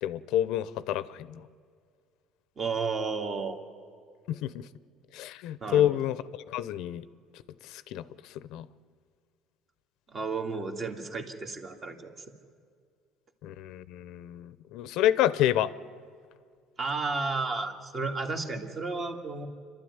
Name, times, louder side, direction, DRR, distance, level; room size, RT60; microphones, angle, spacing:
voice 1, 0.0-1.4 4.3-4.6 5.1-6.2 6.5-7.0 7.7-8.0 8.5-8.7 13.4-15.7, left 12 dB, 70° left, 16 dB, 0.7 m, -28 dB
voice 2, 2.6-3.6 5.6-6.0 10.1-12.1 16.8-19.5, right 4 dB, 30° right, 4 dB, 2.2 m, -32 dB
27.5 x 12.5 x 9.6 m, 2.2 s
cardioid pair, 130°, 0 cm